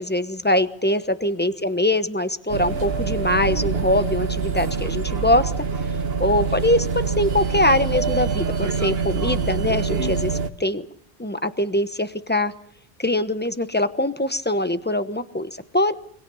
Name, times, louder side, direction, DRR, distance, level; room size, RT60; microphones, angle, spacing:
voice 1, 0.0-5.5 6.2-10.8 11.2-12.5 13.0-15.9, left 1 dB, 10° left, 11 dB, 1.0 m, -23 dB
sound 1, 2.5-10.5, right 5 dB, 65° right, 1.4 m, -25 dB
27.0 x 24.5 x 5.6 m, 0.63 s
omnidirectional pair, 1.1 m